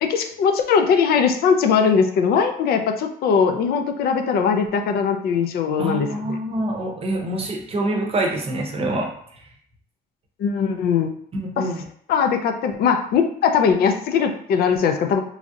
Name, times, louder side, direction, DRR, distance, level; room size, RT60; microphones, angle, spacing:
voice 1, 0.0-6.1 10.4-11.1 11.6-11.7 12.1-15.2, left 6 dB, 65° left, 5 dB, 0.5 m, -20 dB
voice 2, 5.8-9.1 11.3-11.8, right 1 dB, 35° right, 1 dB, 0.7 m, -25 dB
3.2 x 2.4 x 2.6 m, 0.64 s
cardioid pair, 110°, 17 cm